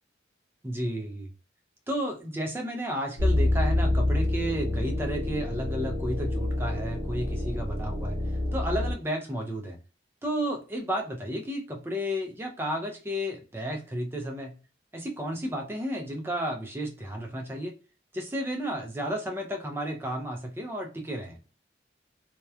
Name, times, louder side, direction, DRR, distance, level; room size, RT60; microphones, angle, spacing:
voice 1, 0.6-1.3 1.9-8.2 8.5-9.8 10.2-14.5 14.9-17.7 18.1-21.4, equal, 15° right, 2 dB, 0.4 m, -32 dB
sound 1, 3.2-8.9, left 1 dB, 30° left, 0.8 m, -27 dB
2.8 x 2.1 x 2.2 m, 0.35 s
head